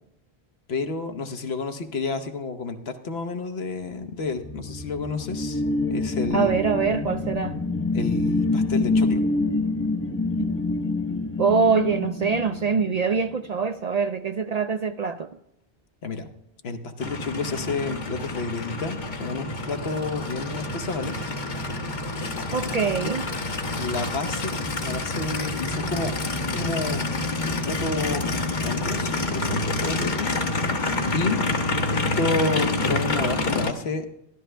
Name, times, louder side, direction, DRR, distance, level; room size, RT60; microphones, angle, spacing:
voice 1, 0.7-5.6 5.9-6.9 7.9-9.2 16.0-16.3 16.6-21.2 22.1-23.2 23.8-27.1 27.4-30.3 31.1-31.4 31.9-34.1, left 4 dB, 75° left, 7 dB, 1.2 m, -30 dB
sound 1, 4.1-13.4, left 3 dB, 20° left, 0.5 m, -26 dB
voice 2, 6.3-7.6 10.4-10.5 11.4-15.3 22.5-23.3, right 5 dB, 55° right, 9 dB, 0.5 m, -24 dB
Aircraft, 17.0-33.7, left 2 dB, 50° left, 1.1 m, -28 dB
13.0 x 12.5 x 3.3 m, 0.81 s
omnidirectional pair, 1.1 m